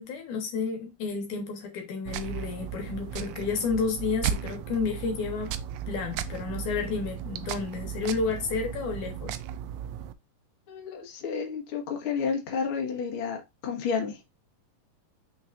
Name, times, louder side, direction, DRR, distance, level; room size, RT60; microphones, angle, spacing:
voice 1, 0.0-5.5 5.9-9.4, left 5 dB, 65° left, 2.8 m, -31 dB
sound 1, 2.1-10.1, right 9 dB, 85° right, 1.7 m, -35 dB
voice 2, 10.7-14.2, left 6 dB, 45° left, 2.1 m, -31 dB
6.1 x 6.0 x 2.6 m
omnidirectional pair, 3.9 m